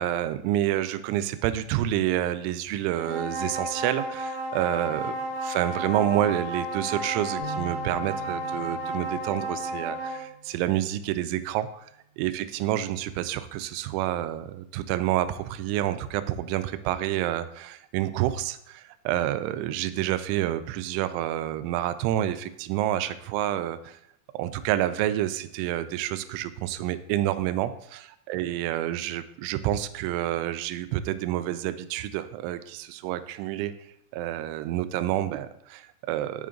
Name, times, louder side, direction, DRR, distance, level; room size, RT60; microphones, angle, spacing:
voice 1, 0.0-5.2 5.4-11.9 12.2-24.0 24.3-28.0 28.3-33.7 34.1-36.5, right 13 dB, 85° right, 12 dB, 2.9 m, -28 dB
sound 1, 2.9-10.3, right 1 dB, 50° right, 1.4 m, -33 dB
sound 2, 7.4-10.9, right 3 dB, 90° left, 0.5 m, -43 dB
9.3 x 5.1 x 3.8 m, 0.74 s
omnidirectional pair, 5.4 m